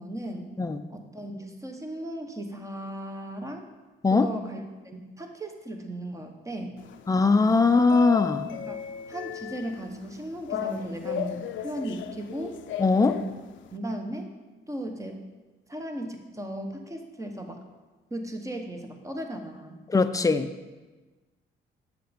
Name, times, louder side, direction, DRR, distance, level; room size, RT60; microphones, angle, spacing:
voice 1, 0.0-0.5 0.9-3.7 4.1-6.8 8.5-8.8 9.1-12.6 13.1-13.3 13.7-14.3 14.7-15.2 15.7-17.6 18.1-19.8, right 1 dB, 15° right, 4 dB, 1.1 m, -36 dB
sound 1, 6.8-13.8, left 10 dB, 70° left, 0.5 m, -36 dB
voice 2, 7.1-8.4 12.8-13.2 19.9-20.5, left 4 dB, 15° left, 9 dB, 0.5 m, -21 dB
7.6 x 6.0 x 5.2 m, 1.2 s
cardioid pair, 90°, 20 cm